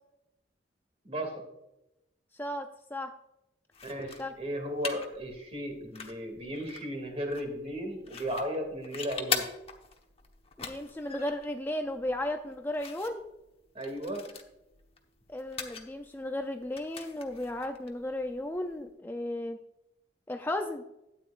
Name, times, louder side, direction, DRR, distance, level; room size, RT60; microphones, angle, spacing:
voice 1, 2.4-3.1 4.2-4.3 10.6-13.2 15.3-19.6 20.3-20.8, left 1 dB, 10° left, 5 dB, 0.5 m, -35 dB
sound 1, 3.7-18.9, left 6 dB, 35° left, 1.1 m, -42 dB
voice 2, 3.8-9.4 13.7-14.3, equal, 35° right, 3 dB, 2.5 m, -35 dB
13.0 x 9.2 x 2.5 m, 0.88 s
head